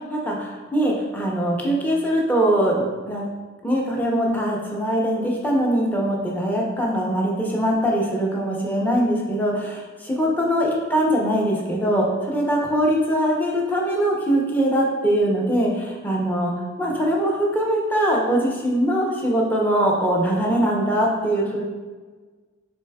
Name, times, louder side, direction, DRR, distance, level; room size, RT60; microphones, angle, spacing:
voice 1, 0.1-2.7 3.1-3.3 3.6-16.5 16.8-21.6, right 1 dB, 10° left, -2 dB, 0.6 m, -22 dB
6.7 x 3.4 x 2.3 m, 1.4 s
head